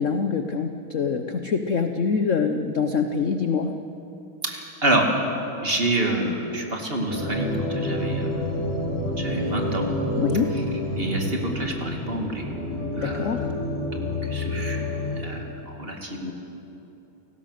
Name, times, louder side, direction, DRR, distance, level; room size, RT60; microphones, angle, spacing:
voice 1, 0.0-3.8 10.2-10.5 13.0-13.5, left 5 dB, 55° left, 7 dB, 0.9 m, -25 dB
voice 2, 4.4-5.1 5.6-8.3 9.1-9.9 11.0-12.5 13.0-13.4 13.9-14.8 15.2-16.3, right 2 dB, 25° right, 1 dB, 2.4 m, -28 dB
sound 1, 7.1-15.2, left 1 dB, 20° left, 7.1 m, -28 dB
29.0 x 18.0 x 6.7 m, 3.0 s
omnidirectional pair, 2.3 m